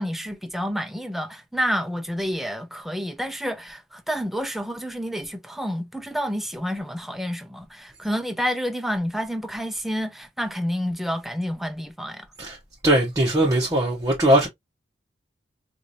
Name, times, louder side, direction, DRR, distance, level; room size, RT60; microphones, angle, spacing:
voice 1, 0.0-12.3, equal, ahead, 0.5 m, -29 dB
voice 2, 12.8-14.5, right 1 dB, 20° right, 0.9 m, -20 dB
4.8 x 2.5 x 2.7 m
head